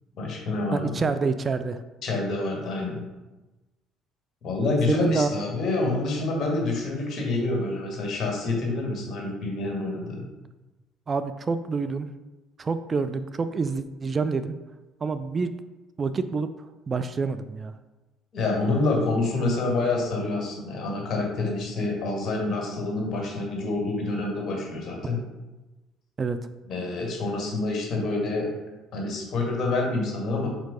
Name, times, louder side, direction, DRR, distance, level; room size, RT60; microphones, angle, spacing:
voice 1, 0.2-1.0 2.0-3.0 4.4-10.2 18.3-25.2 26.7-28.5 28.9-30.5, left 2 dB, 45° left, -1 dB, 1.9 m, -27 dB
voice 2, 0.7-1.8 4.9-5.3 11.1-12.1 12.6-14.5 15.0-15.5 16.0-16.5 16.9-17.7 26.2-26.4, right 4 dB, 30° right, 10 dB, 0.4 m, -27 dB
4.6 x 4.5 x 4.9 m, 1.1 s
figure-of-eight pair, 55°, 0 cm